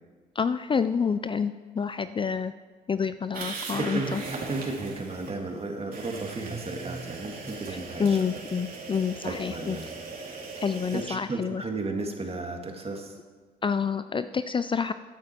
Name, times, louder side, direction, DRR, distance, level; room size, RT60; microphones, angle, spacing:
voice 1, 0.4-2.5 2.9-4.2 7.7-9.8 10.6-11.6 13.6-14.9, left 6 dB, 30° left, 12 dB, 0.4 m, -28 dB
sound 1, 3.3-5.3 5.9-11.0, right 3 dB, 55° right, 2.7 m, -38 dB
voice 2, 3.5-8.3 9.2-9.9 10.2-10.4 10.9-13.1, right 3 dB, 35° right, 3 dB, 2.2 m, -34 dB
14.5 x 8.8 x 4.5 m, 1.5 s
supercardioid pair, 60°, 18 cm